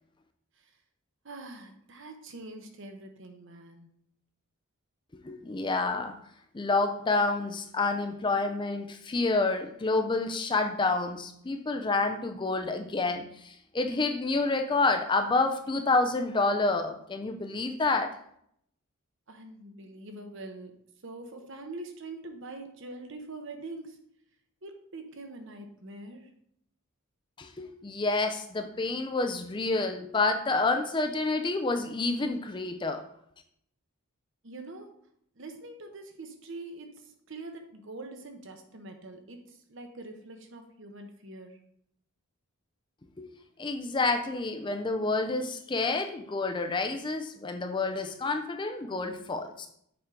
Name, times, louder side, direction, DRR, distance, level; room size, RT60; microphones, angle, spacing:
voice 1, 1.2-3.9 19.3-24.1 24.6-26.3 34.4-35.0 35.3-41.6, right 2 dB, 55° right, 5 dB, 0.9 m, -44 dB
voice 2, 5.2-6.1 6.5-18.1 27.4-33.0 43.2-43.3 43.6-49.7, left 3 dB, 20° left, 6 dB, 0.4 m, -28 dB
7.1 x 4.8 x 3.7 m, 0.70 s
head